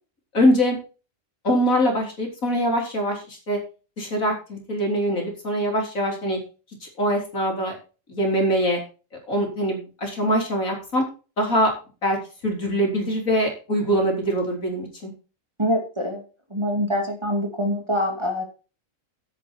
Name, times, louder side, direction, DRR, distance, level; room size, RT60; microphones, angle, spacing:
voice 1, 0.3-0.8 1.4-3.6 4.0-6.4 7.0-7.7 8.1-8.8 9.3-11.0 11.4-11.7 12.0-12.2 12.4-15.1, equal, 80° left, 1 dB, 4.1 m, -23 dB
voice 2, 15.6-16.2 16.5-18.4, equal, 20° right, 3 dB, 2.4 m, -24 dB
9.8 x 9.1 x 4.5 m, 0.34 s
omnidirectional pair, 1.4 m